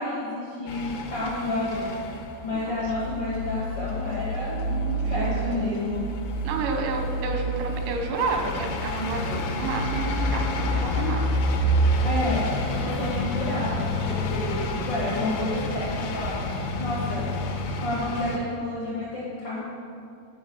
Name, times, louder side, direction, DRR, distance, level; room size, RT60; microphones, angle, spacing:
voice 1, 0.0-1.9 2.4-6.0 12.0-16.4 16.8-17.3 17.8-19.6, left 2 dB, 65° left, -8 dB, 1.4 m, -30 dB
sound 1, 0.7-18.4, equal, 80° left, 3.6 m, -28 dB
voice 2, 5.0-5.7 6.4-11.3, right 3 dB, 90° right, 3 dB, 4.0 m, -30 dB
12.0 x 5.1 x 7.8 m, 2.6 s
omnidirectional pair, 6.0 m